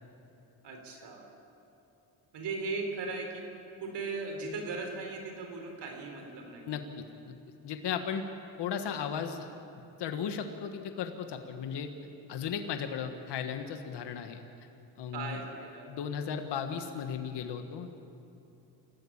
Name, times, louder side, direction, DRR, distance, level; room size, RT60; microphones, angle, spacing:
voice 1, 0.6-1.3 2.3-3.5 3.8-6.8 15.1-15.9, right 3 dB, 70° right, 3 dB, 4.3 m, -38 dB
voice 2, 7.6-8.2 8.6-9.5 10.0-11.9 12.3-14.4 15.0-15.4 15.9-18.0, left 7 dB, 65° left, 6 dB, 1.6 m, -35 dB
27.0 x 14.5 x 8.8 m, 2.9 s
cardioid pair, 115°, 43 cm